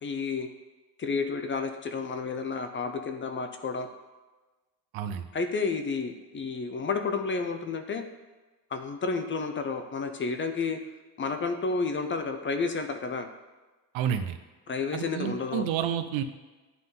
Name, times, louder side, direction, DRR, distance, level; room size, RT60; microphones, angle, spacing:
voice 1, 0.0-0.5 1.0-3.9 5.3-8.0 8.7-10.8 11.2-13.3 14.7-15.7, left 4 dB, 30° left, 8 dB, 0.4 m, -31 dB
voice 2, 4.9-5.3 13.9-14.4 14.9-16.2, right 9 dB, 90° right, 10 dB, 0.7 m, -30 dB
9.7 x 3.8 x 3.8 m, 1.2 s
cardioid pair, 130°, 44 cm